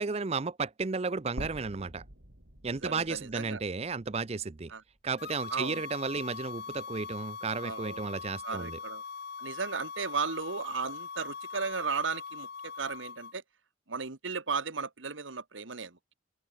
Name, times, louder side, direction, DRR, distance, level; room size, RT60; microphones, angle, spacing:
voice 1, 0.0-2.0 2.6-4.7 5.0-8.8, right 4 dB, 35° right, 0.5 m, -33 dB
sound 1, 1.4-5.5 5.9-6.0 7.4-7.5, right 1 dB, 70° right, 5.0 m, -48 dB
voice 2, 2.7-3.6 4.7-4.8 5.5-5.8 7.6-8.1 8.4-9.0 9.4-13.4 13.9-16.0, right 4 dB, 85° right, 1.6 m, -35 dB
sound 2, 5.2-13.3, left 5 dB, 55° left, 1.0 m, -42 dB
open air
head